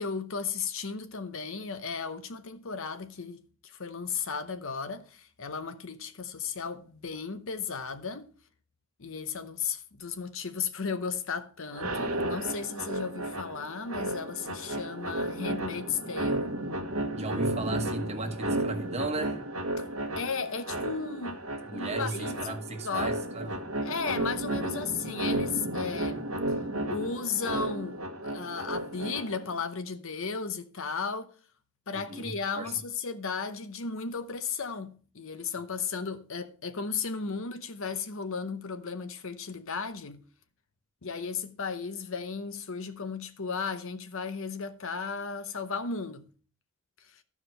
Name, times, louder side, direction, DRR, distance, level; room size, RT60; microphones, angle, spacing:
voice 1, 0.0-8.3 9.0-16.5 20.2-21.4 21.7-22.6 22.8-23.2 23.8-26.3 26.9-31.3 31.9-40.2 41.0-46.3 47.0-47.2, left 5 dB, 60° left, 0.8 m, -35 dB
sound 1, 11.7-29.6, right 1 dB, 65° right, 1.3 m, -33 dB
voice 2, 17.1-19.4 21.7-23.7 31.9-32.7, right 3 dB, 30° right, 1.2 m, -35 dB
12.5 x 4.9 x 5.5 m
head